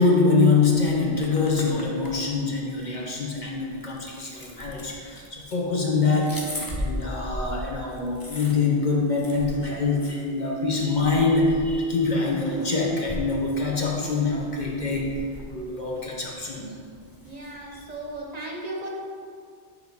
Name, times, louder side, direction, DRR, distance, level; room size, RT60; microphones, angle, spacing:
voice 1, 0.0-16.7 17.7-17.8, left 3 dB, 50° left, -3 dB, 1.0 m, -24 dB
sound 1, 0.6-18.2, left 1 dB, 25° left, 0.6 m, -39 dB
voice 2, 17.2-18.9, right 2 dB, 45° right, -2 dB, 0.8 m, -36 dB
7.1 x 3.2 x 5.3 m, 2.2 s
omnidirectional pair, 1.0 m